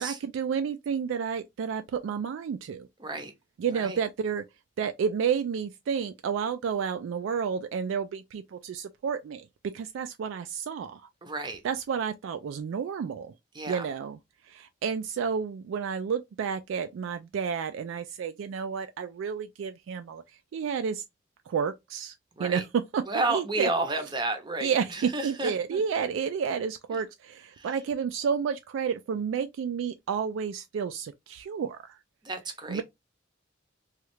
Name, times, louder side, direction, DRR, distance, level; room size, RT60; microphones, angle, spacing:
voice 1, 0.0-2.9 3.6-4.4 4.8-11.1 11.6-13.3 13.7-14.2 14.4-21.0 21.5-22.1 22.4-23.7 24.6-32.0 32.7-32.8, right 6 dB, 75° right, 0.3 m, -31 dB
voice 2, 3.0-3.3 3.7-4.0 11.2-11.6 13.5-13.9 22.4-22.6 23.1-25.8 27.5-27.7 32.2-32.8, right 2 dB, 25° right, 0.6 m, -31 dB
3.1 x 2.3 x 3.1 m
head